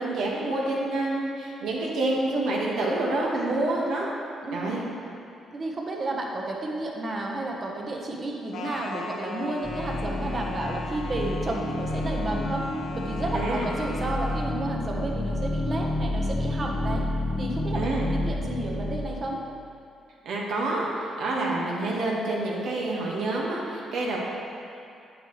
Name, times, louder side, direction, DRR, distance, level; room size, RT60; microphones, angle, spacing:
voice 1, 0.0-4.1 4.5-4.8 13.3-13.7 17.7-18.1 20.2-24.2, right 2 dB, 80° right, -3 dB, 1.6 m, -27 dB
voice 2, 4.4-4.8 5.5-12.6 12.9-17.0 17.4-17.9 18.2-19.4 21.4-21.7, right 2 dB, 40° right, 0 dB, 1.2 m, -32 dB
sound 1, 8.5-14.5, left 3 dB, 85° left, 1.3 m, -39 dB
sound 2, 9.6-19.5, left 1 dB, 5° left, 0.9 m, -30 dB
8.8 x 7.9 x 3.2 m, 2.5 s
cardioid pair, 90°, 0 cm